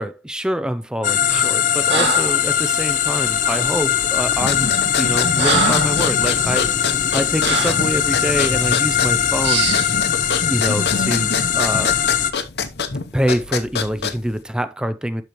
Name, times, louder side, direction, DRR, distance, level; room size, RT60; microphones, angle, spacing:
voice 1, 0.0-4.7 5.0-9.7 10.5-12.0 13.1-15.2, equal, 5° right, 0.5 m, -25 dB
sound 1, 1.0-12.3, left 9 dB, 45° left, 0.5 m, -20 dB
Breathing, 1.3-1.6 1.9-2.4 3.4-3.7 4.4-4.5 5.0-6.0 6.5-6.6 7.4-7.8 8.5-8.8 9.4-9.9, right 4 dB, 90° right, 2.2 m, -24 dB
sound 2, 4.3-14.4, left 4 dB, 65° left, 0.8 m, -26 dB
12.0 x 4.6 x 3.0 m
head